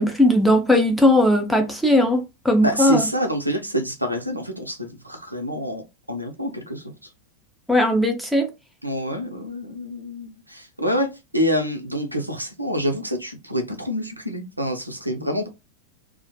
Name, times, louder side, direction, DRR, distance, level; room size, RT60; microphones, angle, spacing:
voice 1, 0.0-3.1 7.7-8.5, left 1 dB, ahead, 0.5 m, -18 dB
voice 2, 2.6-5.8 6.1-6.9 8.8-11.1 11.3-15.5, equal, 85° right, 0.5 m, -27 dB
2.4 x 2.1 x 2.6 m
figure-of-eight pair, 90°, 0 cm